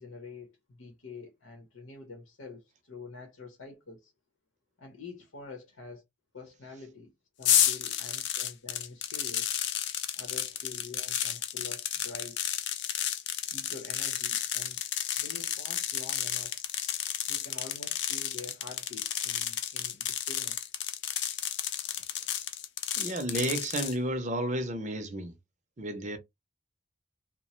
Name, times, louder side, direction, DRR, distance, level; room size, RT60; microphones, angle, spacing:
voice 1, 0.0-4.1 4.8-6.0 6.3-7.1 7.4-9.6 10.2-12.5 13.5-14.8 15.2-16.6 17.3-20.7, left 3 dB, 80° left, 0.8 m, -47 dB
sound 1, 7.4-23.9, left 10 dB, 55° left, 0.4 m, -32 dB
voice 2, 23.0-25.4 25.8-26.2, right 1 dB, 35° right, 0.5 m, -32 dB
2.9 x 2.1 x 2.9 m
head